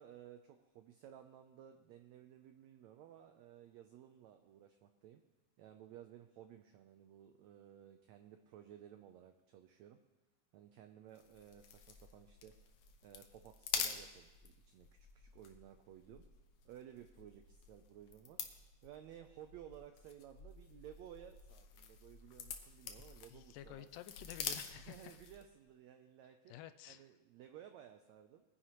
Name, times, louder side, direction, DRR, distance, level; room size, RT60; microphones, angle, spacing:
voice 1, 0.0-5.2 5.6-10.0 10.5-12.7 13.0-16.2 16.6-18.4 18.8-23.9 24.7-26.5 26.9-28.4, right 10 dB, 85° right, 7 dB, 1.5 m, -56 dB
sound 1, 11.1-25.5, left 7 dB, 70° left, 2.0 m, -47 dB
voice 2, 23.3-25.2 26.5-27.1, left 12 dB, 85° left, 11 dB, 2.1 m, -51 dB
21.5 x 10.0 x 3.0 m, 1.1 s
omnidirectional pair, 3.8 m